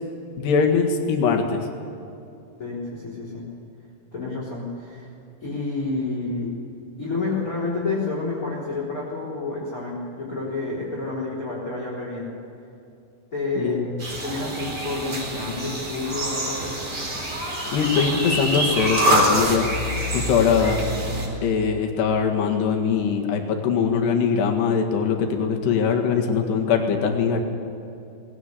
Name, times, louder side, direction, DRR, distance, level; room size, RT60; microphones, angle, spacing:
voice 1, 0.4-1.7 13.6-13.9 17.7-19.6 20.1-20.8 21.4-27.4, left 6 dB, 65° left, 2 dB, 3.7 m, -22 dB
voice 2, 2.6-3.5 4.1-5.1 5.4-6.6 7.0-12.4 13.3-16.7, left 3 dB, 20° left, -7 dB, 3.8 m, -29 dB
sound 1, 14.0-21.3, equal, 20° right, 3.9 m, -25 dB
19.5 x 18.0 x 8.3 m, 2.7 s
omnidirectional pair, 5.7 m